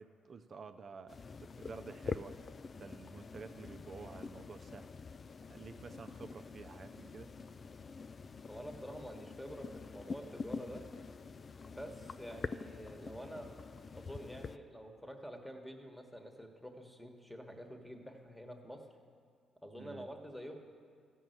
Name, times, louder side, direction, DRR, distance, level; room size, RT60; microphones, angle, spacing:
voice 1, 0.0-2.3 2.8-4.9 5.5-7.3 19.8-20.1, right 5 dB, 45° right, 9 dB, 0.6 m, -50 dB
sound 1, 1.1-14.6, left 4 dB, 40° left, 0.3 m, -46 dB
voice 2, 8.5-10.8 11.6-13.5 13.9-18.8 19.6-20.5, equal, ahead, 3 dB, 1.3 m, -48 dB
14.0 x 5.5 x 7.8 m, 2.2 s
cardioid pair, 90°, 0 cm